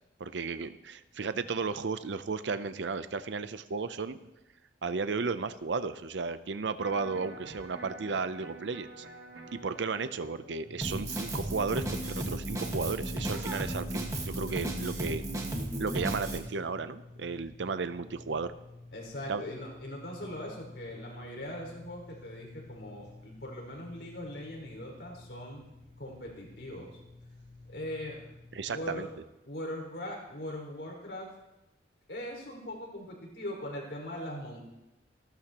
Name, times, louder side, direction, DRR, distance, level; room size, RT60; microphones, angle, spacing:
voice 1, 0.2-4.2 4.8-9.1 9.5-15.2 15.8-18.5 19.3-19.4 28.5-29.1, right 4 dB, 80° right, 12 dB, 0.6 m, -34 dB
Electric guitar, 6.8-12.8, right 2 dB, 65° right, 1.7 m, -50 dB
voice 2, 7.2-7.6 10.6-11.1 18.9-25.6 26.0-27.0 27.7-28.3 28.6-29.1 29.4-31.3 32.1-34.6, left 1 dB, 65° left, 0 dB, 5.2 m, -41 dB
Drum kit, 10.8-16.4, right 1 dB, 20° right, 1.6 m, -34 dB
sound 1, 10.8-29.1, left 2 dB, 45° right, 4.6 m, -51 dB
28.0 x 12.5 x 3.0 m, 0.94 s
head